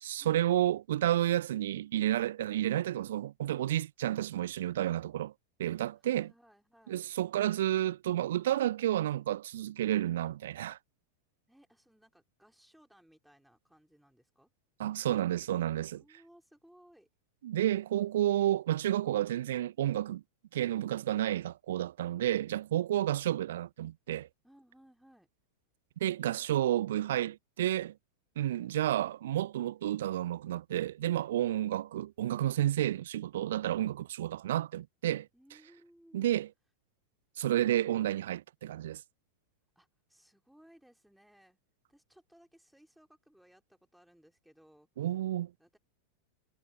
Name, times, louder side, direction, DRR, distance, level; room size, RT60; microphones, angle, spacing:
voice 1, 0.0-5.3 5.6-6.3 6.9-10.8 14.8-16.0 17.4-20.2 20.5-24.3 26.0-27.9 28.4-35.3 36.1-36.5 37.4-39.0 45.0-45.5, right 12 dB, 60° right, 0.3 m, -31 dB
voice 2, 5.9-7.0 11.5-14.5 15.9-17.1 22.9-23.0 24.4-25.3 35.3-36.5 39.8-41.6 41.9-44.9 45.6-45.8, equal, ahead, 4.2 m, -62 dB
figure-of-eight pair, 90°, 0 cm